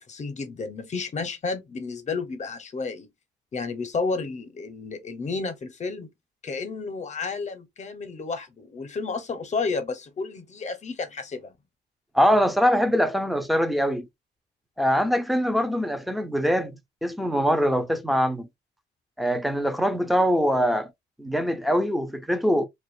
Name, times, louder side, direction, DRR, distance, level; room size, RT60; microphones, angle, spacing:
voice 1, 0.1-3.1 3.5-6.1 6.4-11.5, left 4 dB, 35° left, 0.7 m, -31 dB
voice 2, 12.1-14.1 14.8-16.8 17.0-18.5 19.2-20.9 21.2-22.7, equal, ahead, 0.5 m, -23 dB
2.4 x 2.2 x 2.4 m
cardioid pair, 90°, 20 cm